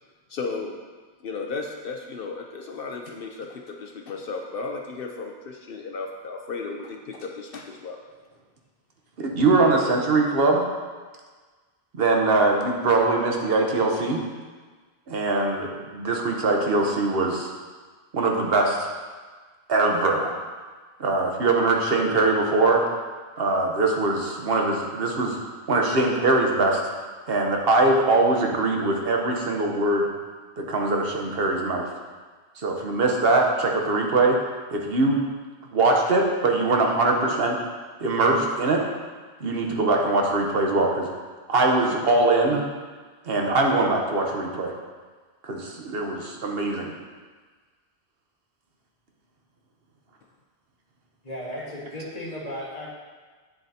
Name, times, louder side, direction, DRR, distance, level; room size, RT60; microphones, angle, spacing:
voice 1, 0.3-0.8 1.2-8.0, left 4 dB, 65° left, 2 dB, 0.8 m, -34 dB
voice 2, 9.2-10.7 12.0-14.2 15.1-17.5 18.1-18.9 19.7-20.4 21.0-22.8 23.4-25.4 25.7-26.8 27.3-30.1 30.6-31.9 32.6-34.4 34.7-35.2 35.7-37.6 38.0-38.8 39.4-41.1 41.5-42.6 43.3-44.7 45.4-46.9, right 2 dB, 65° right, 1 dB, 1.1 m, -22 dB
voice 3, 51.2-52.9, equal, 40° left, -5 dB, 1.7 m, -35 dB
8.6 x 7.4 x 2.7 m, 1.4 s
omnidirectional pair, 1.1 m